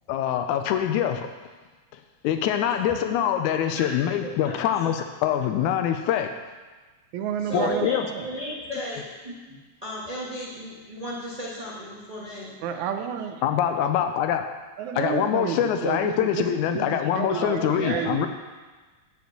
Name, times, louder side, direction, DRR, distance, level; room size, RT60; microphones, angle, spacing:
voice 1, 0.1-1.3 2.2-6.3 7.5-8.1 13.4-14.4 14.9-18.3, left 10 dB, 90° left, 7 dB, 2.0 m, -24 dB
voice 2, 2.8-3.1 3.7-4.9 7.4-9.5 9.8-12.5 17.3-18.1, equal, 35° right, -6 dB, 0.6 m, -35 dB
voice 3, 7.1-8.2 12.6-13.4 14.8-18.3, right 8 dB, 80° right, 6 dB, 2.0 m, -30 dB
9.5 x 5.2 x 6.5 m, 1.3 s
omnidirectional pair, 3.4 m